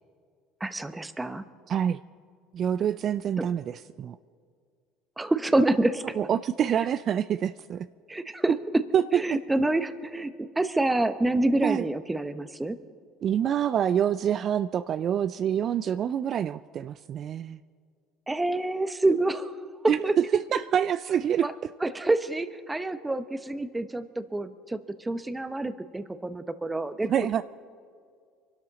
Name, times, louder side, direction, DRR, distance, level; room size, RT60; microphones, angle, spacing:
voice 1, 0.6-1.4 3.4-3.5 5.2-6.0 8.1-8.8 9.1-12.8 18.3-19.5 19.8-20.1 21.4-21.5 21.8-27.1, right 2 dB, 15° right, 12 dB, 0.9 m, -27 dB
voice 2, 1.7-2.0 2.5-4.2 6.1-7.9 8.9-9.2 11.6-11.9 13.2-17.6 19.9-21.5 27.0-27.4, right 9 dB, 50° right, 13 dB, 0.3 m, -26 dB
25.0 x 12.5 x 4.1 m, 2.1 s
hypercardioid pair, 75°, 0 cm